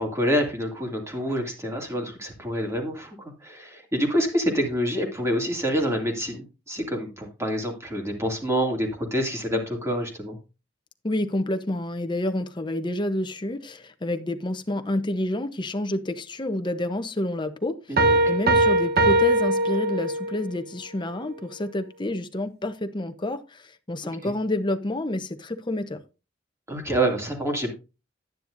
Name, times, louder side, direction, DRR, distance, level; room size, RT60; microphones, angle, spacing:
voice 1, 0.0-10.4 17.9-18.1 24.2-24.3 26.7-27.7, equal, 15° right, 2.6 m, -27 dB
voice 2, 11.0-26.0, left 1 dB, 25° left, 0.8 m, -29 dB
sound 1, 18.0-20.5, right 1 dB, 55° right, 1.1 m, -21 dB
10.5 x 9.9 x 2.6 m
head